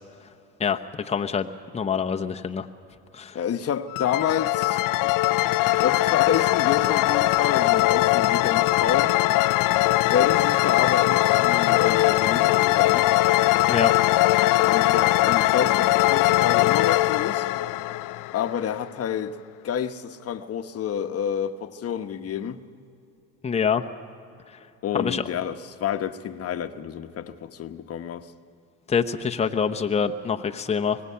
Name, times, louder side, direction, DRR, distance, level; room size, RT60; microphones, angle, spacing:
voice 1, 0.6-1.5 1.7-2.7 3.1-3.4 13.7-13.9 23.4-23.8 24.9-25.2 28.9-31.0, left 6 dB, 15° left, 0.9 m, -25 dB
voice 2, 3.3-5.1 5.8-9.1 9.9-13.1 14.6-17.5 18.3-19.3 19.6-22.6 24.8-28.3, left 8 dB, 40° left, 1.1 m, -28 dB
sound 1, 3.9-18.7, left 18 dB, 55° left, 0.6 m, -21 dB
25.0 x 19.5 x 5.7 m
supercardioid pair, 85°, 38 cm